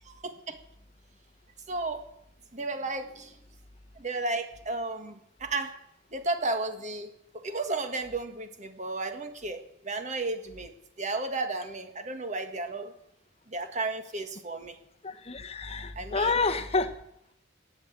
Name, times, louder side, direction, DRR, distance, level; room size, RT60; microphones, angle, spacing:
voice 1, 0.1-0.6 1.7-2.0 2.5-3.3 4.0-5.7 6.1-10.7 11.0-12.9 13.5-14.8 16.0-16.3, right 2 dB, 40° right, 8 dB, 1.6 m, -33 dB
voice 2, 15.0-16.9, left 4 dB, 30° left, 8 dB, 1.0 m, -29 dB
14.5 x 9.3 x 8.8 m, 0.76 s
head